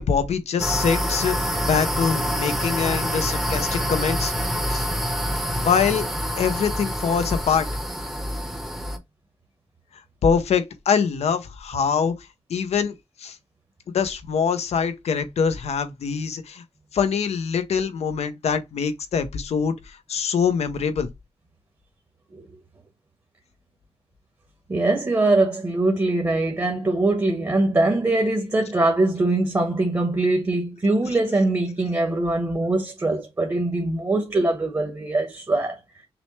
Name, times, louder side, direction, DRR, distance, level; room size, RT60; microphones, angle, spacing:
voice 1, 0.0-4.3 4.7-4.8 5.6-6.0 6.4-7.7 10.2-12.1 12.5-13.4 13.9-16.6 16.9-21.1, left 6 dB, 85° left, 0.6 m, -24 dB
sound 1, 0.6-9.0, equal, 5° right, 0.8 m, -26 dB
voice 2, 24.7-35.8, right 2 dB, 30° right, 1.1 m, -22 dB
5.9 x 2.1 x 3.2 m
wide cardioid pair, 100°, 11 cm